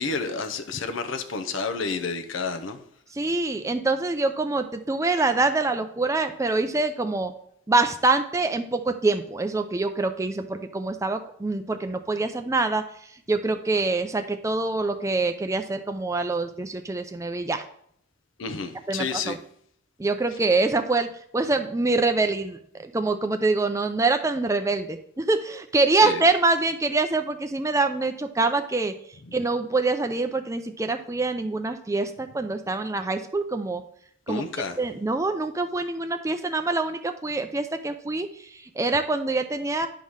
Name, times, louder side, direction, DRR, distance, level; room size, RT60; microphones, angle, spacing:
voice 1, 0.0-2.8 18.4-19.4 26.0-26.2 29.2-29.3 34.3-34.8, left 4 dB, 75° left, 0.8 m, -30 dB
voice 2, 3.1-7.3 7.7-12.8 13.3-17.6 18.9-19.4 20.0-21.1 21.3-28.9 29.3-33.8 34.3-34.4 34.8-39.9, right 3 dB, 15° right, 0.4 m, -25 dB
10.0 x 3.7 x 6.3 m
head